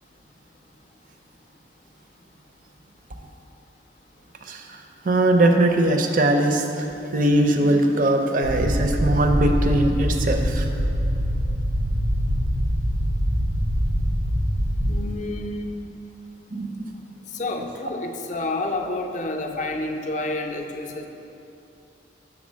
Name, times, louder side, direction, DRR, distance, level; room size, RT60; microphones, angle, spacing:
voice 1, 4.4-4.8 5.0-10.7 16.5-16.9, right 1 dB, 45° right, 4 dB, 0.5 m, -21 dB
sound 1, 8.4-15.0, equal, 85° right, 0.8 m, -23 dB
voice 2, 14.9-15.7 17.3-21.1, left 2 dB, 40° left, 4 dB, 0.4 m, -29 dB
6.0 x 3.9 x 6.2 m, 2.9 s
head